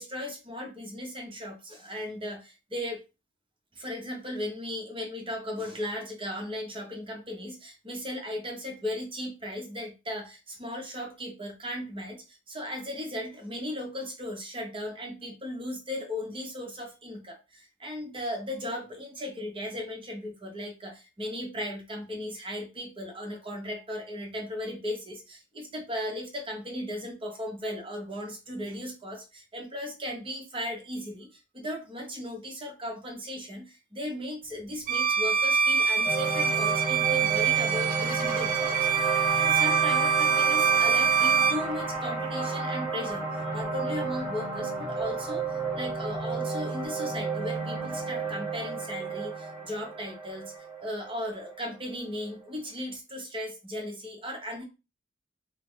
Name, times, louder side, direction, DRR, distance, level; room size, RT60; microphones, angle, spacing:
voice 1, 0.0-3.0 3.7-50.5 50.8-54.6, left 1 dB, 25° right, 2 dB, 0.8 m, -37 dB
Bowed string instrument, 34.9-41.7, right 7 dB, 40° right, 0.3 m, -25 dB
sound 1, 36.1-52.3, right 3 dB, ahead, 1.6 m, -32 dB
3.4 x 2.0 x 3.5 m, 0.28 s
head